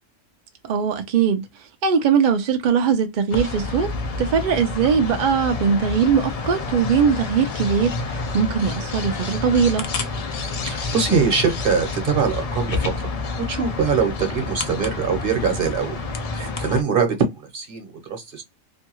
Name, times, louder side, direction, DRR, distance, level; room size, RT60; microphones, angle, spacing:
voice 1, 0.6-1.4 1.8-3.9 4.2-9.8, right 6 dB, 65° right, 0.4 m, -20 dB
sound 1, 3.3-16.8, left 3 dB, 70° left, 0.3 m, -29 dB
voice 2, 10.6-13.1 13.5-15.9 16.3-18.4, right 5 dB, 50° right, 1.0 m, -23 dB
2.6 x 2.2 x 2.8 m
omnidirectional pair, 1.3 m